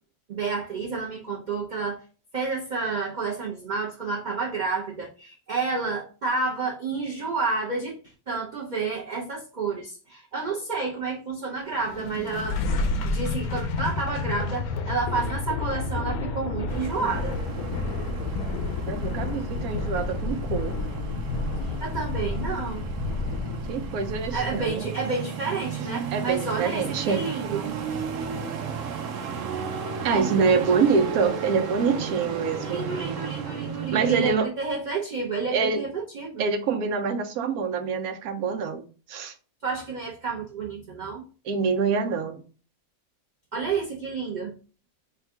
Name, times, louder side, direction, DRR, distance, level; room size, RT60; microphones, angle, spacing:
voice 1, 0.3-2.0 2.3-8.0 8.3-12.6 13.0-17.4 21.6-22.8 24.3-27.7 30.1-31.0 32.6-36.4 39.6-41.2 43.5-44.5, right 4 dB, 45° right, -3 dB, 0.7 m, -30 dB
sound 1, 11.7-24.8, left 3 dB, 85° left, 1.1 m, -30 dB
sound 2, 16.7-34.3, right 6 dB, 65° right, 1.0 m, -34 dB
voice 2, 18.9-20.8 23.7-24.9 26.1-27.3 30.0-32.8 33.9-34.5 35.5-35.8 36.4-38.8 39.1-39.3 41.4-42.4, right 5 dB, 90° right, 6 dB, 1.1 m, -25 dB
3.5 x 2.3 x 4.5 m, 0.38 s
omnidirectional pair, 1.5 m